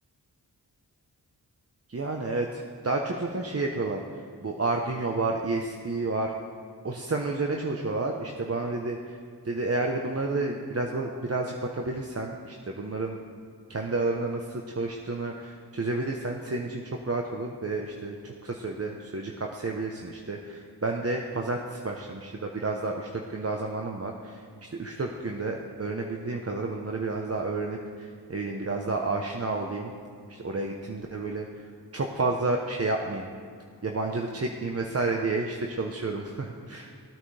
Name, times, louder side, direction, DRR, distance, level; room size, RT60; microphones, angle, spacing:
voice 1, 1.9-4.0 4.4-6.3 6.8-9.2 9.4-13.2 13.7-29.9 30.3-31.6 31.9-33.3 33.8-36.9, right 3 dB, 35° right, 1 dB, 1.0 m, -30 dB
18.5 x 9.2 x 3.4 m, 2.3 s
cardioid pair, 65°, 40 cm